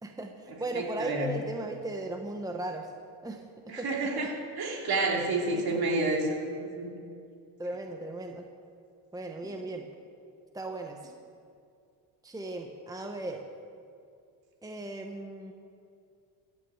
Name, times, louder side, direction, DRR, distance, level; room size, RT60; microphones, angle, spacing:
voice 1, 0.0-2.9 3.2-3.9 5.5-5.9 7.6-8.5 9.1-9.9 10.5-11.1 12.2-13.4 14.6-15.5, right 2 dB, 10° right, 4 dB, 1.1 m, -37 dB
voice 2, 0.7-1.3 3.7-7.0 9.4-9.5, right 2 dB, 50° right, 0 dB, 3.2 m, -30 dB
15.5 x 6.8 x 7.9 m, 2.5 s
supercardioid pair, 75°, 46 cm